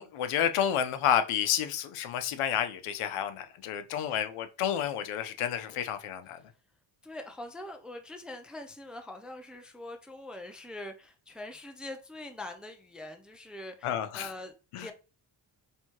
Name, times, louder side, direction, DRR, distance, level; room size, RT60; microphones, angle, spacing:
voice 1, 0.0-6.4 13.8-14.3 14.7-14.9, left 9 dB, 85° left, 0.7 m, -30 dB
voice 2, 7.0-14.5 14.8-14.9, left 1 dB, ahead, 0.4 m, -43 dB
4.5 x 3.4 x 2.9 m
cardioid pair, 135°, 50 cm